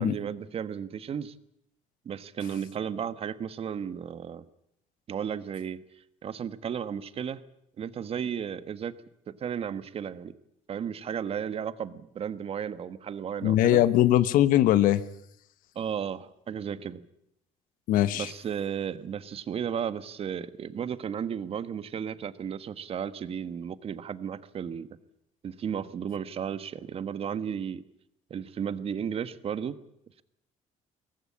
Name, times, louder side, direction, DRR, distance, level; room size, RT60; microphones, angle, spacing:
voice 1, 0.0-1.3 2.0-4.4 5.1-5.8 6.2-7.4 7.8-8.9 9.3-10.3 10.7-13.8 15.7-17.0 18.2-24.9 25.4-27.8 28.3-29.8, right 8 dB, 45° right, 13 dB, 1.4 m, -34 dB
voice 2, 13.4-15.0 17.9-18.3, left 13 dB, 80° left, 14 dB, 1.1 m, -21 dB
23.0 x 18.5 x 8.6 m, 0.75 s
cardioid pair, 125°, 14 cm